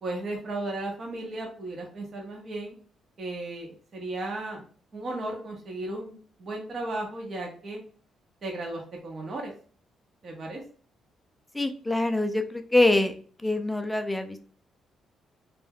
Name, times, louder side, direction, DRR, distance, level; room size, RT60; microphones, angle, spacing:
voice 1, 0.0-2.8 3.2-4.6 4.9-7.8 8.4-9.5 10.2-10.6, right 2 dB, 45° right, 0 dB, 0.7 m, -35 dB
voice 2, 11.5-13.2 13.4-14.5, left 2 dB, 10° left, 7 dB, 0.4 m, -24 dB
2.2 x 2.1 x 3.3 m, 0.42 s
cardioid pair, 90°, 0 cm